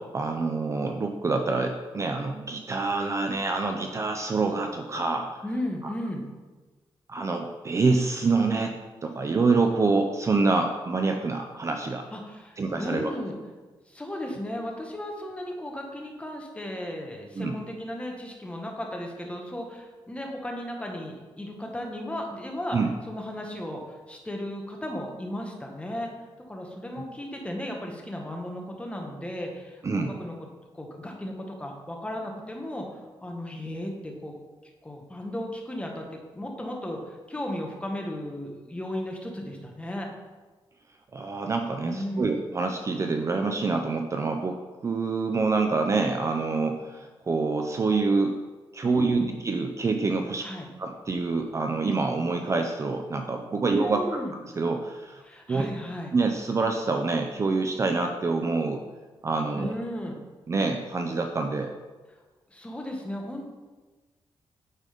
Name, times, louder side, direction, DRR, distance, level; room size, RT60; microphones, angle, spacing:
voice 1, 0.0-5.4 5.8-5.9 7.1-8.8 9.0-12.1 12.6-13.1 17.4-17.6 22.7-22.9 29.8-30.2 41.1-48.4 48.7-50.5 50.8-54.2 54.6-55.2 55.5-55.7 56.1-58.8 59.2-59.7 60.5-61.7, right 3 dB, 30° right, 5 dB, 0.4 m, -26 dB
voice 2, 5.4-6.2 12.1-13.3 13.9-22.8 23.1-23.8 24.1-26.1 26.5-30.4 30.7-34.4 34.8-36.1 36.3-40.1 41.8-42.3 48.8-49.3 50.4-50.7 53.7-54.3 55.2-56.1 59.6-60.2 62.5-63.5, left 1 dB, 10° left, 1 dB, 1.1 m, -35 dB
9.1 x 3.8 x 5.0 m, 1.3 s
wide cardioid pair, 150°, 10 cm